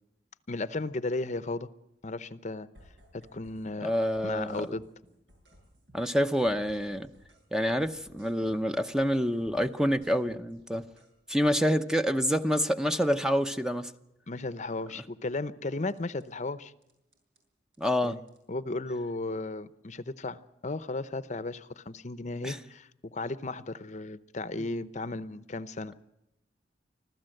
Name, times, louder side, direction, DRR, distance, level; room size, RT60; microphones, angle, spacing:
voice 1, 0.5-1.7 2.0-2.7 3.1-3.9 4.2-4.8 14.3-16.7 18.0-18.2 18.5-25.9, left 2 dB, 45° left, 15 dB, 0.8 m, -35 dB
sound 1, 2.7-3.6 3.9-7.5 7.7-11.1 15.9-16.3 16.8-17.4 17.7-18.4, equal, 85° right, 7.5 m, -58 dB
voice 2, 3.8-4.7 5.9-7.1 7.5-10.8 11.3-13.9 17.8-18.2 22.4-22.6, equal, 5° right, 9 dB, 0.7 m, -27 dB
25.5 x 15.5 x 7.8 m, 0.87 s
head